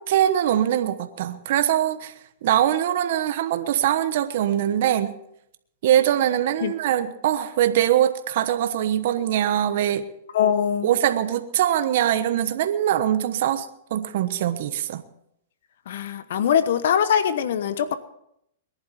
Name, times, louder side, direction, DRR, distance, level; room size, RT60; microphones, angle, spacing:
voice 1, 0.0-2.1 2.4-5.1 5.8-10.1 10.8-15.0, right 11 dB, 60° right, 10 dB, 1.1 m, -22 dB
voice 2, 10.3-10.9 15.9-18.0, left 8 dB, 70° left, 13 dB, 1.0 m, -22 dB
21.5 x 11.0 x 4.3 m, 0.75 s
hypercardioid pair, 140°, 0 cm